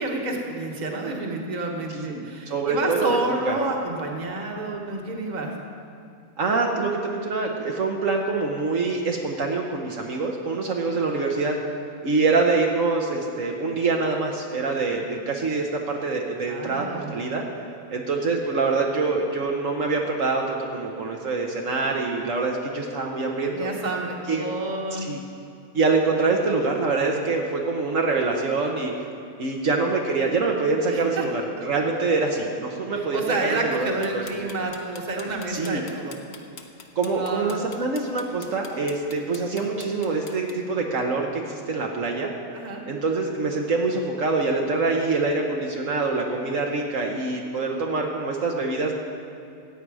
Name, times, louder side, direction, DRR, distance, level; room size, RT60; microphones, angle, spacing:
voice 1, 0.0-5.5 16.5-17.1 23.5-25.1 30.8-31.3 32.9-36.1 37.1-37.6 42.5-42.8, right 2 dB, 30° right, 1 dB, 1.3 m, -29 dB
voice 2, 1.9-3.6 6.4-11.6 12.0-17.4 17.9-23.7 24.3-24.4 25.0-25.2 25.7-28.9 29.4-33.2 33.5-33.9 34.1-34.5 35.5-35.8 37.0-42.3 42.9-48.9, right 3 dB, 65° right, 0 dB, 1.3 m, -25 dB
sound 1, 34.0-40.5, left 6 dB, 55° left, 1.0 m, -43 dB
14.5 x 9.0 x 4.8 m, 2.6 s
omnidirectional pair, 1.5 m